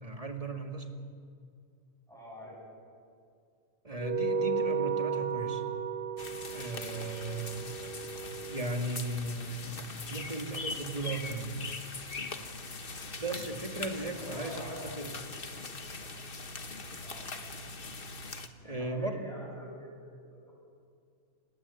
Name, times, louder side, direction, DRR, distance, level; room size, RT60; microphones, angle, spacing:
voice 1, 0.0-0.9 3.8-5.6 6.5-7.8 8.5-11.6 13.2-15.2 18.6-19.3, right 2 dB, 25° right, 4 dB, 2.3 m, -37 dB
voice 2, 2.1-2.6 13.3-13.5 14.0-16.1 17.0-17.3 18.6-20.5, equal, ahead, -4 dB, 7.7 m, -47 dB
sound 1, 4.0-8.8, right 5 dB, 60° right, 1.2 m, -34 dB
sound 2, 6.2-18.5, left 3 dB, 40° left, 1.5 m, -41 dB
29.5 x 20.0 x 8.4 m, 2.3 s
omnidirectional pair, 1.5 m